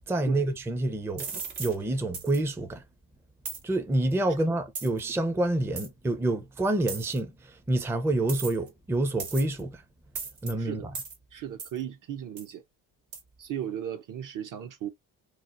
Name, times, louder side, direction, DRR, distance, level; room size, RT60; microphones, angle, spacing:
voice 1, 0.1-2.8 3.6-9.8 10.4-10.9, right 1 dB, 5° right, 0.5 m, -28 dB
sound 1, 1.2-1.7 2.1-2.4 3.4-3.6 4.7-5.0 5.8-5.9 6.9-7.2 8.3-8.7 9.2-9.6 10.1-10.5 10.9-11.2 11.6-11.8 12.4-12.5 13.1-13.2, right 5 dB, 80° right, 1.4 m, -36 dB
voice 2, 10.6-11.0 11.3-12.6 13.4-14.9, right 10 dB, 50° right, 0.7 m, -36 dB
3.1 x 2.0 x 2.4 m
supercardioid pair, 65°, 41 cm